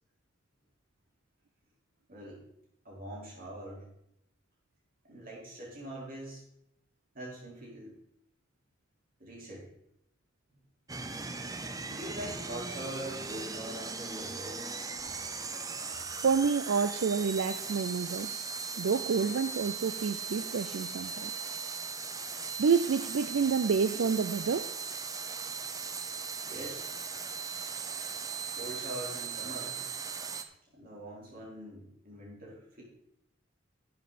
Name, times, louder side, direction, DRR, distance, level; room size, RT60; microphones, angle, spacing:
voice 1, 2.1-2.4 2.8-3.9 5.0-6.4 7.1-7.9 9.2-9.7 11.5-14.6 26.4-26.9 28.5-29.8 30.7-32.8, right 1 dB, 50° right, -4 dB, 4.4 m, -43 dB
sound 1, 10.9-30.4, right 5 dB, 20° right, 0.7 m, -38 dB
voice 2, 16.2-21.5 22.6-24.7, right 5 dB, 70° right, 12 dB, 0.4 m, -29 dB
12.5 x 7.4 x 4.2 m, 0.77 s
head